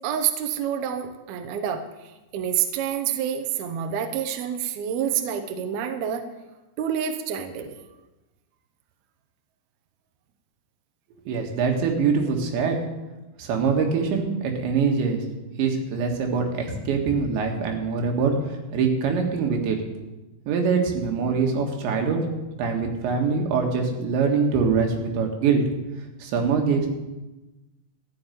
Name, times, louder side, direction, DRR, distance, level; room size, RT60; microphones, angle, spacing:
voice 1, 0.0-6.3 6.8-7.8, right 9 dB, 70° right, 7 dB, 2.7 m, -28 dB
voice 2, 11.3-12.8 13.4-15.2 15.6-19.8 20.5-22.2 22.6-25.6 26.2-26.9, right 5 dB, 90° right, 2 dB, 4.1 m, -23 dB
13.5 x 7.2 x 9.1 m, 1.1 s
omnidirectional pair, 5.0 m